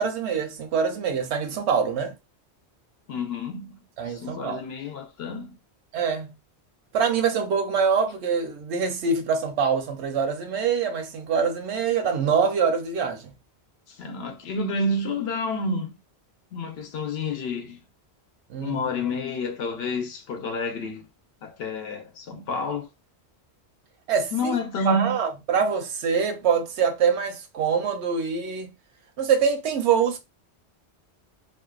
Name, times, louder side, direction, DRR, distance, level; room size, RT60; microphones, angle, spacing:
voice 1, 0.0-2.1 4.0-4.6 5.9-6.3 6.9-13.3 18.5-19.1 24.1-24.6 24.8-28.7 29.2-30.2, right 6 dB, 80° right, 0.9 m, -24 dB
voice 2, 3.1-3.8 4.1-5.6 13.9-15.9 16.5-17.8 18.6-21.1 21.4-22.9 24.3-25.2, left 2 dB, 70° left, 0.8 m, -29 dB
2.6 x 2.1 x 2.3 m
omnidirectional pair, 1.1 m